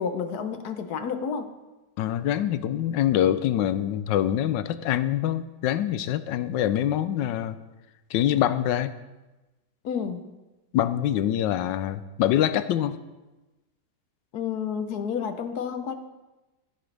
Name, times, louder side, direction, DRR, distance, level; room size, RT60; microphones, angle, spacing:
voice 1, 0.0-1.5 9.8-10.3 14.3-15.9, left 6 dB, 65° left, 8 dB, 1.3 m, -30 dB
voice 2, 2.0-7.6 8.1-8.9 10.7-13.0, left 11 dB, 85° left, 13 dB, 1.3 m, -25 dB
15.5 x 9.0 x 3.4 m, 1.1 s
omnidirectional pair, 1.9 m